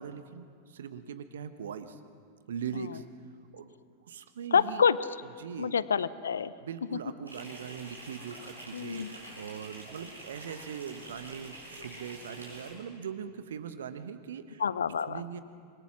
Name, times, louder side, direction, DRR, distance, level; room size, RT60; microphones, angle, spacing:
voice 1, 0.0-2.0 2.5-3.0 3.5-3.7 4.1-4.8 5.4-5.8 6.6-14.6 15.0-15.4, right 7 dB, 65° right, 11 dB, 1.1 m, -41 dB
voice 2, 4.5-5.0 5.6-6.5 6.9-7.0 8.7-9.1 14.6-15.2, left 7 dB, 70° left, 17 dB, 0.7 m, -27 dB
sound 1, 7.3-12.7, right 1 dB, 85° right, 5.4 m, -46 dB
27.0 x 22.0 x 6.1 m, 2.2 s
figure-of-eight pair, 90°, 0 cm